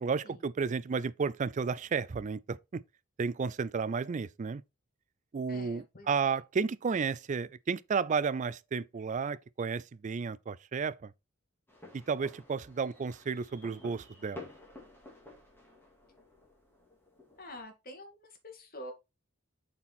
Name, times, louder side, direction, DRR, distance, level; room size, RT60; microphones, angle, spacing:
voice 1, 0.0-2.8 3.2-4.6 5.3-11.1 12.1-14.4, right 5 dB, 35° right, 0.4 m, -32 dB
voice 2, 5.5-6.4 17.3-18.9, left 1 dB, 45° left, 2.0 m, -48 dB
sound 1, 11.7-17.6, left 2 dB, 10° left, 2.1 m, -52 dB
7.2 x 4.4 x 4.2 m
head